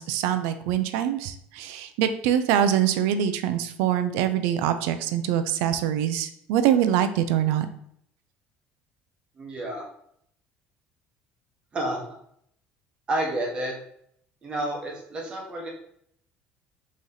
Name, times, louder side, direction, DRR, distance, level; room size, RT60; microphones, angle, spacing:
voice 1, 0.0-7.7, right 10 dB, 90° right, 10 dB, 0.5 m, -24 dB
voice 2, 9.4-9.8 11.7-12.0 13.1-13.7 14.4-15.7, right 1 dB, 25° right, -1 dB, 1.1 m, -30 dB
4.1 x 3.2 x 3.8 m, 0.69 s
cardioid pair, 150°, 4 cm